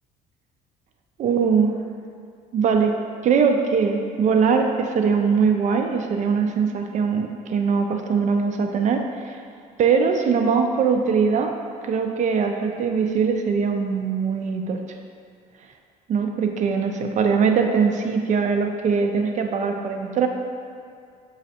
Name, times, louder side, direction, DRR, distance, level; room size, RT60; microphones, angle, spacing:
voice 1, 1.2-1.8 2.5-9.0 9.8-11.5 11.8-14.8 16.1-20.3, right 5 dB, 45° right, 4 dB, 0.4 m, -21 dB
5.0 x 3.2 x 2.8 m, 2.3 s
cardioid pair, 110°, 17 cm